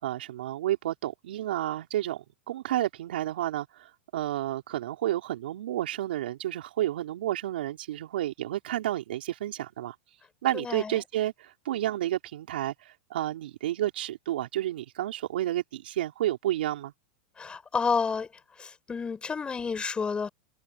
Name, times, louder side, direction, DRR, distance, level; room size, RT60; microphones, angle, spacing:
voice 1, 0.0-9.9 10.4-16.9, right 13 dB, 75° right, 3.8 m, -31 dB
voice 2, 10.5-11.0 17.4-18.3 18.6-20.3, left 5 dB, 20° left, 4.9 m, -30 dB
hypercardioid pair, 110°, 5 cm